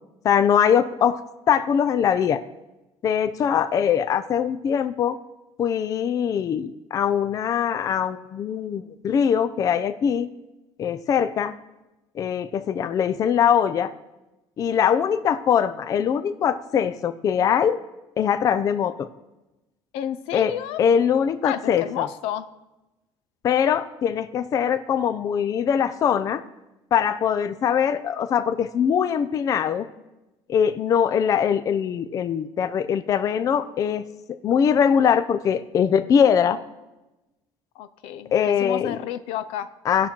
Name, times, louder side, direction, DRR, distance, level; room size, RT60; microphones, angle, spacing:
voice 1, 0.2-1.2 1.5-2.4 3.0-5.2 5.6-10.3 10.8-11.5 12.2-13.9 14.6-17.8 18.2-19.1 20.3-20.5 20.8-22.1 23.4-26.4 26.9-29.9 30.5-34.0 34.4-36.6 38.3-39.0 39.9-40.1, left 8 dB, 35° left, 12 dB, 0.4 m, -22 dB
voice 2, 19.9-20.8 21.4-22.5 37.8-39.7, left 10 dB, 80° left, 13 dB, 0.6 m, -31 dB
17.0 x 5.9 x 4.4 m, 1.0 s
cardioid pair, 140°, 10 cm